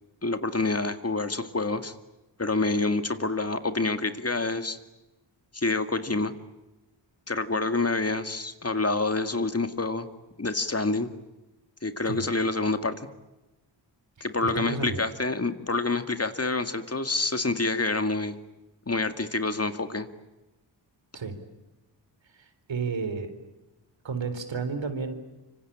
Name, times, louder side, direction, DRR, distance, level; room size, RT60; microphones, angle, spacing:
voice 1, 0.2-1.9 2.4-4.8 5.5-6.3 7.3-10.1 10.4-11.1 11.8-13.1 14.2-18.4 18.9-20.1, left 3 dB, 30° left, 9 dB, 2.1 m, -27 dB
voice 2, 14.5-15.0 21.1-21.4 22.3-23.3 24.0-25.1, right 4 dB, 75° right, 9 dB, 3.8 m, -32 dB
25.5 x 25.5 x 8.7 m, 1.0 s
cardioid pair, 60°, 45 cm